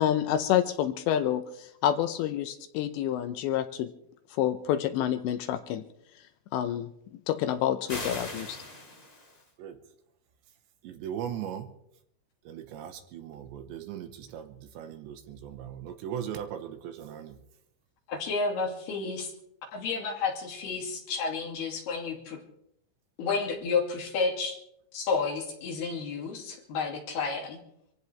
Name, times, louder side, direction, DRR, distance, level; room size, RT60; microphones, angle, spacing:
voice 1, 0.0-3.9 4.3-5.8 6.5-6.9 7.3-8.6, left 11 dB, 80° left, 9 dB, 2.8 m, -28 dB
sound 1, 7.9-9.5, left 1 dB, 15° left, 3.2 m, -39 dB
voice 2, 10.8-11.7 12.5-17.4, right 9 dB, 75° right, 7 dB, 3.4 m, -38 dB
voice 3, 18.1-19.3 19.7-22.4 23.2-24.6 24.9-27.6, left 4 dB, 60° left, 0 dB, 4.4 m, -31 dB
25.5 x 16.0 x 3.4 m, 0.75 s
omnidirectional pair, 5.4 m